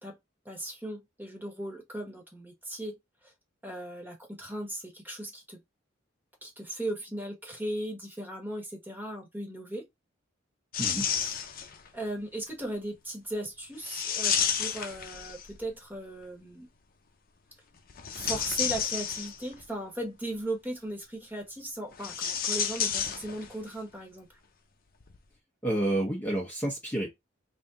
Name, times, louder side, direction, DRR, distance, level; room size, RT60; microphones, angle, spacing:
voice 1, 0.4-3.3 3.6-5.6 6.4-9.9 11.9-16.7 18.1-24.3, right 1 dB, 10° right, 1.4 m, -37 dB
sound 1, 10.7-11.9 13.8-15.7 17.9-19.6 21.9-23.7 23.9-24.0 25.0-25.2, left 7 dB, 50° left, 0.7 m, -31 dB
voice 2, 25.6-27.2, right 1 dB, 10° left, 0.9 m, -29 dB
3.4 x 2.7 x 3.7 m
head